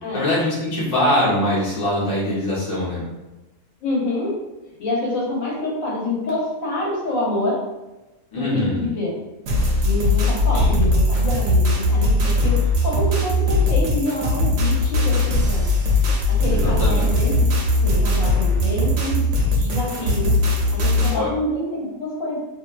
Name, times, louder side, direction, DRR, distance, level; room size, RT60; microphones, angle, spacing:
voice 1, 0.1-3.0 8.3-8.8 10.5-10.7 16.5-17.1 21.1-21.3, left 1 dB, 35° left, -7 dB, 0.8 m, -22 dB
voice 2, 3.8-4.4 4.8-7.6 8.4-9.1 9.8-15.7 16.3-19.2 19.5-20.4 20.7-22.4, left 1 dB, 80° left, -4 dB, 1.2 m, -27 dB
sound 1, 9.5-21.2, left 1 dB, 70° right, 0.8 m, -19 dB
2.6 x 2.2 x 2.2 m, 1.0 s
omnidirectional pair, 1.4 m